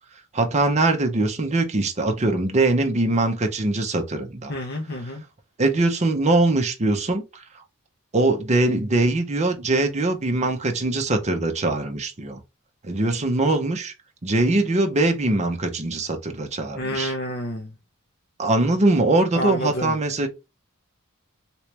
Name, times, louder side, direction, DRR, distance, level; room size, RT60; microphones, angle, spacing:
voice 1, 0.3-4.5 5.6-7.2 8.1-12.4 12.8-13.9 14.2-17.1 18.4-20.3, right 2 dB, 30° right, 0.6 m, -22 dB
voice 2, 4.5-5.2 16.8-17.7 19.3-19.9, equal, 45° left, 0.7 m, -29 dB
3.2 x 2.9 x 3.1 m
head